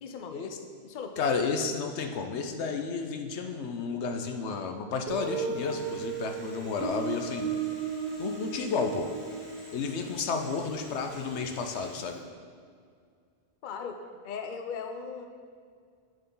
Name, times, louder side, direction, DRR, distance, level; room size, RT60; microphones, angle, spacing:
voice 1, 0.0-0.4 0.8-1.2 13.6-14.0 14.2-15.3, left 6 dB, 55° left, 5 dB, 0.7 m, -38 dB
voice 2, 1.2-7.5 8.2-9.1 9.7-12.2, left 5 dB, 90° left, 5 dB, 1.0 m, -32 dB
Guitar, 5.1-11.7, right 6 dB, 70° right, 1.2 m, -36 dB
sound 1, 5.7-12.0, equal, ahead, 2.2 m, -53 dB
8.1 x 7.4 x 3.8 m, 2.1 s
omnidirectional pair, 1.1 m